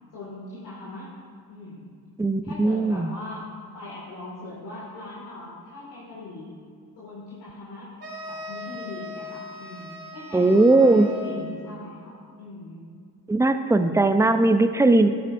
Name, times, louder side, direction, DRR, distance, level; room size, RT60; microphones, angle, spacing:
voice 1, 0.1-1.1 1.5-1.9 2.4-3.4 3.7-6.5 7.0-7.9 8.3-12.9, left 2 dB, 75° left, -7 dB, 2.1 m, -40 dB
voice 2, 2.2-3.1 10.3-11.1 13.3-15.1, right 2 dB, 5° right, 9 dB, 0.5 m, -19 dB
sound 1, 8.0-11.7, left 2 dB, 60° right, 2.4 m, -39 dB
11.5 x 8.6 x 2.6 m, 2.2 s
hypercardioid pair, 45°, 43 cm